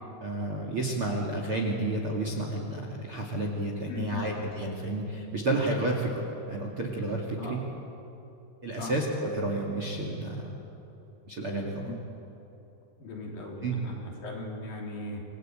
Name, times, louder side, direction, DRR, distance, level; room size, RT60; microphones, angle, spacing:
voice 1, 0.2-7.6 8.6-10.5 11.3-11.9 13.6-13.7, right 2 dB, 35° right, 1 dB, 2.5 m, -31 dB
voice 2, 3.9-4.2 7.4-7.6 8.7-8.9 11.8-12.0 13.0-15.2, left 2 dB, 50° left, -1 dB, 5.0 m, -38 dB
29.0 x 22.5 x 8.9 m, 3.0 s
omnidirectional pair, 5.4 m